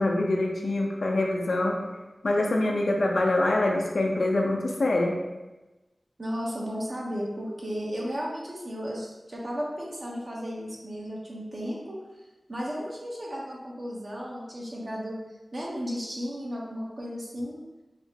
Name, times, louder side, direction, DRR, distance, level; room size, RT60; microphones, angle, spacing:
voice 1, 0.0-1.7 2.2-5.1, left 2 dB, 75° left, 0 dB, 0.6 m, -25 dB
voice 2, 6.2-12.0 12.5-15.2 15.5-17.6, equal, 45° right, -4 dB, 1.0 m, -34 dB
4.9 x 2.0 x 3.5 m, 1.1 s
wide cardioid pair, 80°, 0 cm